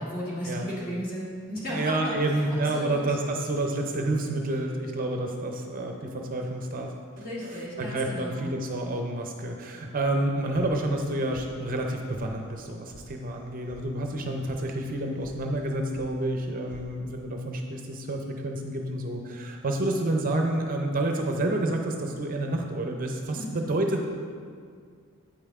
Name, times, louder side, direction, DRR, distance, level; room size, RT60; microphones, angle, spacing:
voice 1, 0.0-3.2 7.1-8.5 23.3-23.7, equal, 40° left, -6 dB, 1.7 m, -35 dB
voice 2, 1.7-6.9 7.4-24.0, right 1 dB, 40° right, 3 dB, 0.5 m, -29 dB
sound 1, 10.5-11.1 11.3-11.9 12.1-12.2 12.6-13.0 13.3-13.8 14.1-14.6 14.9-15.4 15.6-16.1 16.4-16.9, equal, 20° left, 1.8 m, -50 dB
8.5 x 5.5 x 3.6 m, 2.2 s
head